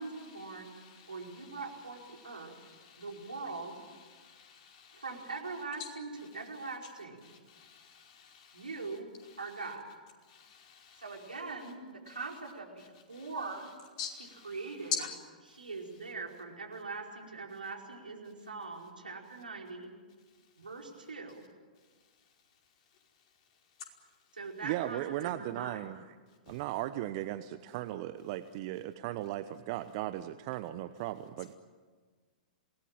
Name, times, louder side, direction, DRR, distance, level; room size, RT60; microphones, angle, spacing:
voice 1, 0.0-0.7 1.1-2.6 3.0-3.9 4.9-7.3 8.5-9.1 9.4-9.9 11.0-13.7 14.4-15.0 15.4-19.9 20.6-21.4 24.3-25.8, right 3 dB, 80° right, 1 dB, 5.0 m, -42 dB
voice 2, 0.6-1.1 2.4-3.0 4.1-5.0 7.2-8.7 10.3-11.0 13.1-13.3 14.0-14.5 15.0-15.1 26.5-26.6, left 5 dB, 45° left, 1 dB, 5.0 m, -49 dB
voice 3, 24.6-26.0 26.5-31.5, right 14 dB, 45° right, 12 dB, 1.0 m, -37 dB
27.0 x 19.5 x 9.0 m, 1.5 s
figure-of-eight pair, 110°, 5 cm